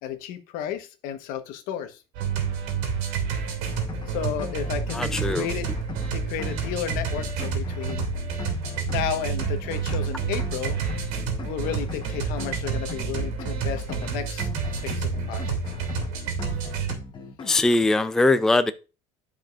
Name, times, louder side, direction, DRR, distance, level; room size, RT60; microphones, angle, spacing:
voice 1, 0.0-2.0 4.1-5.7 6.1-8.1 8.8-10.8 11.4-14.5 14.8-15.6, left 9 dB, 70° left, 1.2 m, -33 dB
sound 1, 2.2-16.9, right 6 dB, 80° right, 2.5 m, -29 dB
sound 2, 3.5-17.6, left 6 dB, 30° left, 1.0 m, -40 dB
voice 2, 4.9-5.5 17.5-18.7, left 2 dB, 5° left, 0.4 m, -21 dB
13.0 x 5.1 x 2.5 m
cardioid pair, 125°, 15 cm